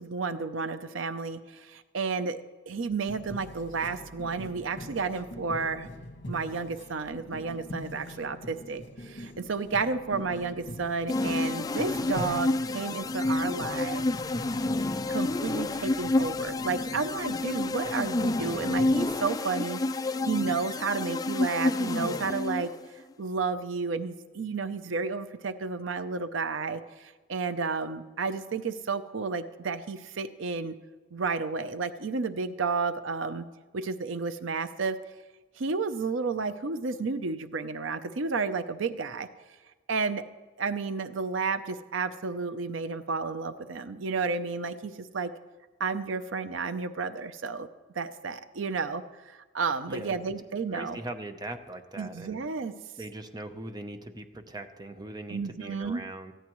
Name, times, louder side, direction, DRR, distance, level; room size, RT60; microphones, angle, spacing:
voice 1, 0.0-5.9 6.3-14.0 15.1-22.7 23.2-30.7 31.1-33.4 33.7-35.0 35.6-39.3 39.9-40.2 40.6-45.3 45.8-47.7 47.9-51.0 52.0-52.7 55.3-56.0, right 4 dB, 85° right, 11 dB, 0.6 m, -32 dB
sound 1, 3.0-19.2, left 1 dB, 60° left, 1.9 m, -43 dB
sound 2, 11.1-22.9, left 2 dB, 20° left, 0.4 m, -29 dB
voice 2, 49.9-50.2 50.7-52.4 53.0-56.3, right 1 dB, 20° right, 7 dB, 0.8 m, -40 dB
18.0 x 14.5 x 3.1 m, 1.3 s
head